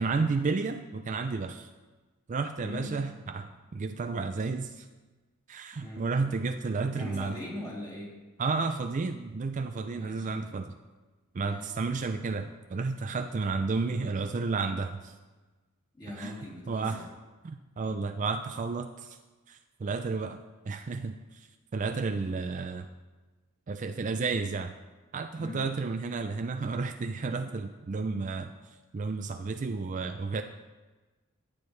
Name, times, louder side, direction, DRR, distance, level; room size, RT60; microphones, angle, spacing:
voice 1, 0.0-1.7 2.3-4.9 5.5-7.4 8.4-10.7 11.3-15.1 16.2-16.3 16.7-17.0 17.4-19.2 19.5-20.4 20.7-21.5 21.7-22.9 23.7-24.7 25.1-30.4, right 4 dB, 35° right, 7 dB, 0.4 m, -32 dB
voice 2, 2.6-2.9 5.8-6.0 7.0-8.1 9.9-10.3 11.4-11.7 15.9-17.1 25.4-25.6, left 1 dB, 20° left, -5 dB, 2.8 m, -41 dB
13.5 x 8.8 x 3.2 m, 1.2 s
head